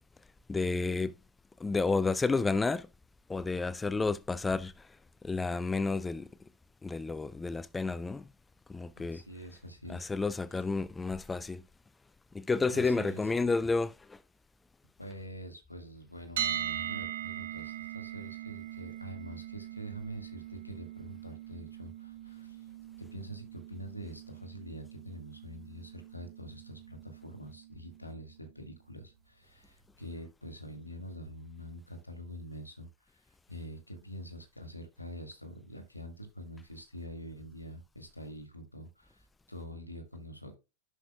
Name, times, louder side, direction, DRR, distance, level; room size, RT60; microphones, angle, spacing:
voice 1, 0.5-1.1 1.6-2.9 3.3-4.9 5.2-6.3 6.8-8.2 8.7-9.2 9.9-11.6 12.3-14.2, left 3 dB, 10° left, 0.4 m, -31 dB
voice 2, 9.0-10.1 12.7-13.2 15.0-22.6 23.1-32.9 33.5-39.2 39.5-40.6, equal, 85° left, 1.8 m, -45 dB
sound 1, 16.4-28.3, right 10 dB, 60° right, 1.0 m, -41 dB
11.0 x 4.9 x 2.3 m
figure-of-eight pair, 90°, 0 cm